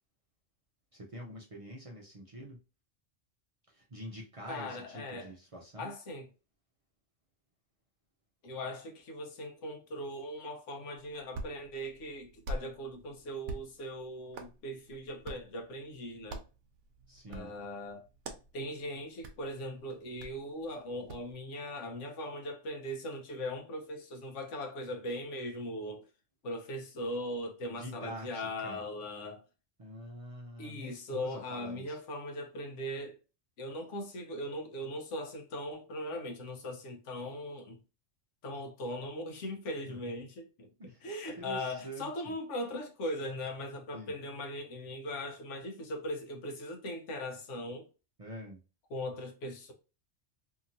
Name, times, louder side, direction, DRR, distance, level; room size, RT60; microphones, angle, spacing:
voice 1, 0.9-2.6 3.7-5.9 17.1-17.5 27.7-28.8 29.8-32.0 39.9-40.0 40.8-41.0 41.4-42.3 43.9-44.1 48.2-48.6, right 1 dB, 40° right, 0.5 m, -45 dB
voice 2, 4.5-5.3 5.8-6.3 8.4-16.4 17.3-18.0 18.5-26.0 26.4-29.4 30.6-33.2 33.6-37.8 38.4-40.7 41.0-47.9 48.9-49.7, left 1 dB, 85° left, 1.1 m, -39 dB
Hands, 11.0-21.3, right 1 dB, 85° right, 1.0 m, -47 dB
2.8 x 2.7 x 2.5 m
omnidirectional pair, 1.2 m